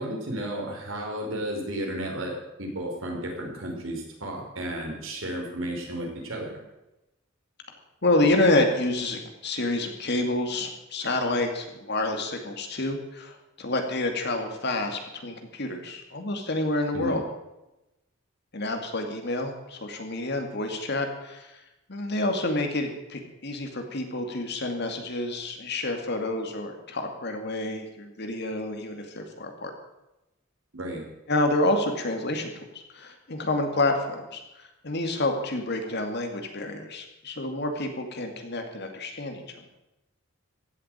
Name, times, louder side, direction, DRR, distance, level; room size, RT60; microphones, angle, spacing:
voice 1, 0.0-6.5 16.9-17.2 30.7-31.0, right 1 dB, 75° right, 0 dB, 4.8 m, -33 dB
voice 2, 8.0-17.2 18.5-21.6 21.9-29.7 31.3-32.7 32.9-39.7, left 2 dB, 55° left, 5 dB, 2.4 m, -28 dB
15.5 x 7.7 x 9.2 m, 0.96 s
head